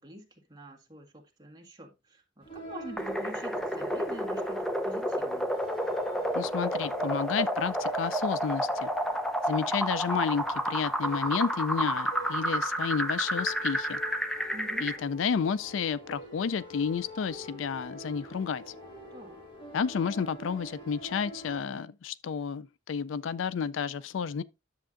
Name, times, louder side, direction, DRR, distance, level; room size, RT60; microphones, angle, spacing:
voice 1, 0.0-5.5 14.5-14.9 19.1-19.4, equal, 20° right, 1.7 m, -46 dB
sound 1, 2.4-21.6, equal, 25° left, 1.8 m, -46 dB
sound 2, 3.0-15.0, equal, 5° left, 0.6 m, -30 dB
voice 2, 6.3-8.9 9.5-14.0 14.8-18.6 19.7-24.4, left 6 dB, 85° left, 0.4 m, -31 dB
10.5 x 7.2 x 2.5 m
head